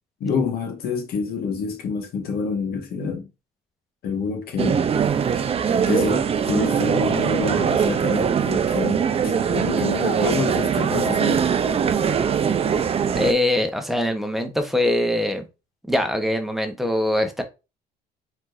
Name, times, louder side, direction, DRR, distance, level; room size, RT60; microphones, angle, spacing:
voice 1, 0.2-3.3 4.0-4.8 5.9-11.5, left 5 dB, 65° left, 1.7 m, -27 dB
sound 1, 4.6-13.3, right 7 dB, 35° right, 0.6 m, -21 dB
voice 2, 13.1-15.4 15.9-17.4, left 1 dB, ahead, 1.1 m, -22 dB
4.4 x 4.4 x 2.6 m
cardioid pair, 110°, 17 cm